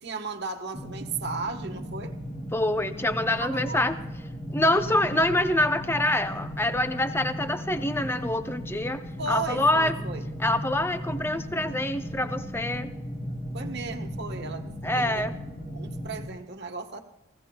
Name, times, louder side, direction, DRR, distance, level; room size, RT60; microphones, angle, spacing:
voice 1, 0.0-2.1 3.3-3.8 9.2-10.3 13.5-17.0, right 4 dB, 50° right, 5 dB, 1.3 m, -36 dB
sound 1, 0.7-16.3, equal, 30° left, 3.2 m, -36 dB
voice 2, 2.5-3.9 4.5-9.0 9.3-9.9 10.4-12.9 14.8-15.3, left 1 dB, 10° left, 8 dB, 0.7 m, -25 dB
27.5 x 16.0 x 2.3 m, 1.0 s
head